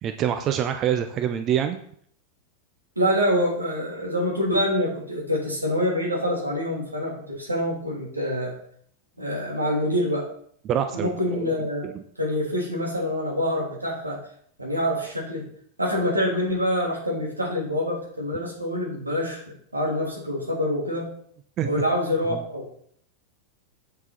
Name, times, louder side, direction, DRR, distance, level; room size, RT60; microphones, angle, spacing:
voice 1, 0.0-1.8 10.6-11.5 11.8-11.9 21.6-21.7 22.3-22.4, right 9 dB, 30° right, 8 dB, 0.7 m, -25 dB
voice 2, 2.9-8.5 9.2-10.3 10.9-11.8 12.2-14.2 14.6-15.4 15.8-19.4 19.7-21.1 21.6-22.7, equal, 85° right, -4 dB, 3.3 m, -26 dB
7.8 x 7.0 x 4.2 m, 0.63 s
figure-of-eight pair, 90°, 0 cm